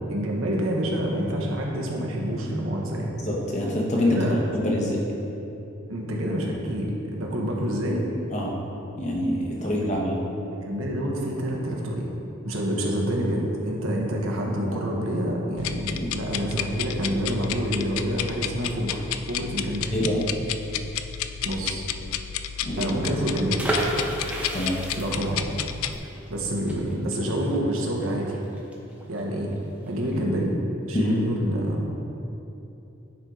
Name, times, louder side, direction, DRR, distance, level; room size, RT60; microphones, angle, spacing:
voice 1, 0.1-3.1 4.1-4.4 5.9-8.0 10.6-12.1 12.4-20.1 21.4-21.9 22.8-23.6 25.0-25.4 26.3-28.3 29.1-29.5 29.9-30.5 30.9-31.8, equal, 80° right, -1 dB, 1.2 m, -27 dB
voice 2, 3.2-4.2 4.5-5.0 8.3-8.5 9.0-10.2 16.0-16.1 19.9-20.2 22.6-22.9 24.5-24.8 30.9-31.2, left 1 dB, 35° left, -2 dB, 1.1 m, -25 dB
sound 1, 15.6-26.0, left 9 dB, 90° left, 0.3 m, -32 dB
sound 2, 23.6-29.2 29.5-29.6 29.9-30.2, right 1 dB, 5° right, 0.8 m, -31 dB
9.6 x 4.5 x 3.8 m, 2.9 s
head